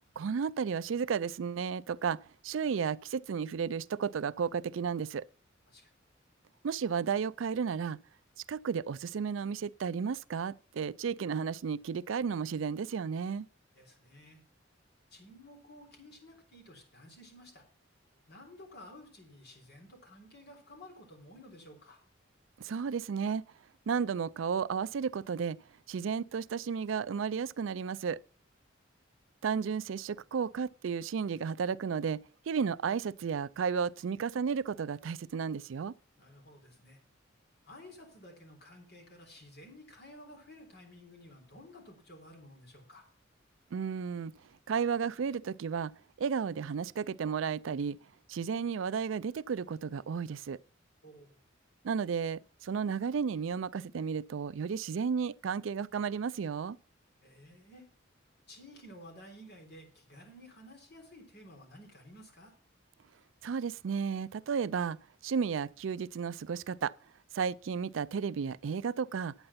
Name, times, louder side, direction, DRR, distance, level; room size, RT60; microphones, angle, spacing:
voice 1, 0.2-5.2 6.6-8.0 8.5-13.5 22.6-23.4 23.9-25.6 25.9-28.2 29.4-35.9 43.7-44.3 44.7-45.9 46.2-48.0 48.3-50.6 51.8-56.8 63.4-65.0 65.2-66.9 67.3-69.3, right 6 dB, 75° right, 0.4 m, -33 dB
voice 2, 13.7-14.4 15.1-17.7 18.3-22.0 36.2-37.0 37.6-43.1 51.0-51.4 57.2-57.9 58.5-62.5, left 1 dB, 55° left, 3.8 m, -53 dB
9.0 x 8.7 x 5.6 m
head